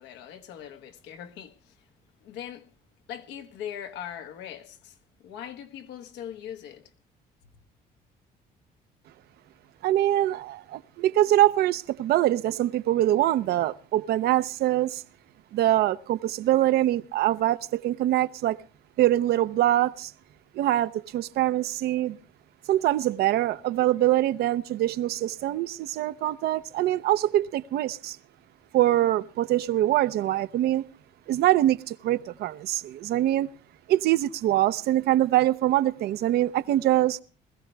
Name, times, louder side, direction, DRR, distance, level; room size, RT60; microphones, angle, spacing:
voice 1, 0.0-1.8 2.2-2.7 3.1-5.0 5.2-6.9, left 9 dB, 90° left, 1.4 m, -40 dB
voice 2, 9.8-15.0 15.5-18.6 19.0-20.1 20.5-22.2 22.7-28.2 28.7-30.9 31.3-33.5 33.9-37.2, right 14 dB, 70° right, 0.6 m, -24 dB
20.5 x 14.5 x 3.3 m
cardioid pair, 110°, 17 cm